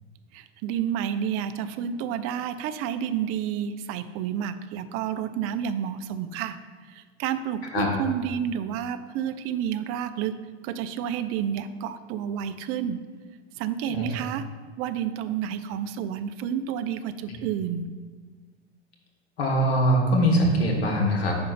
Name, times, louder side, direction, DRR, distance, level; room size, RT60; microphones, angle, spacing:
voice 1, 0.3-6.6 6.9-10.3 10.6-13.0 13.6-14.4 14.8-17.9, right 9 dB, 50° right, 12 dB, 0.5 m, -30 dB
voice 2, 19.4-21.4, equal, 85° left, 1 dB, 1.4 m, -22 dB
5.2 x 4.3 x 5.7 m, 1.5 s
hypercardioid pair, 85°, 31 cm